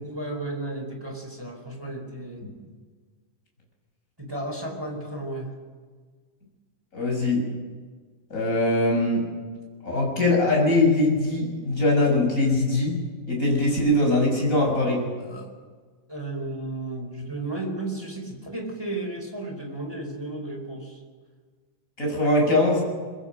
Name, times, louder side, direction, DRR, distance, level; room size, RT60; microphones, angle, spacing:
voice 1, 0.0-2.4 4.2-5.5 15.2-15.5 16.1-21.0, right 2 dB, 5° right, 2 dB, 3.9 m, -33 dB
voice 2, 6.9-7.4 8.3-9.2 9.8-13.0 13.3-15.0 22.0-22.8, left 2 dB, 20° left, -1 dB, 7.4 m, -22 dB
24.0 x 21.5 x 6.4 m, 1.5 s
omnidirectional pair, 4.2 m